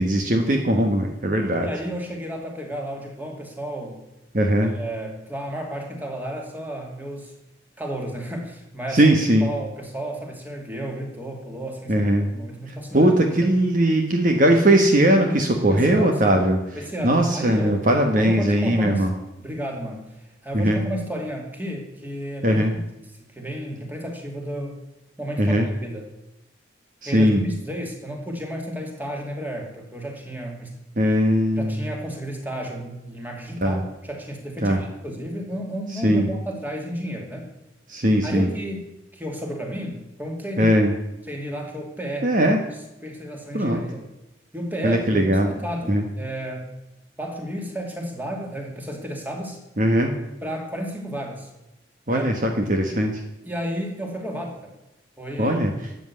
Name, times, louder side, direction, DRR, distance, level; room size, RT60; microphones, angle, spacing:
voice 1, 0.0-1.7 4.3-4.7 8.9-9.5 11.9-12.3 12.9-16.6 17.0-19.1 20.5-20.8 22.4-22.7 25.4-25.7 27.0-27.4 31.0-31.8 33.6-33.8 34.6-34.8 36.0-36.3 37.9-38.5 40.6-40.9 42.2-42.6 43.5-43.8 44.8-45.5 45.9-46.0 49.8-50.1 52.1-53.2 55.4-55.7, right 1 dB, 45° right, 3 dB, 1.4 m, -19 dB
voice 2, 1.6-4.0 4.6-7.3 7.8-13.1 13.4-13.5 15.7-16.5 16.7-17.9 18.2-19.1 19.4-22.9 23.3-24.8 25.2-26.1 27.0-30.7 31.6-37.5 38.2-40.7 41.3-42.5 43.0-44.0 44.5-46.7 47.2-49.6 50.4-51.5 52.1-52.3 53.4-54.7 55.2-55.8, equal, 10° right, 1 dB, 2.6 m, -32 dB
13.0 x 8.1 x 8.6 m, 0.93 s
head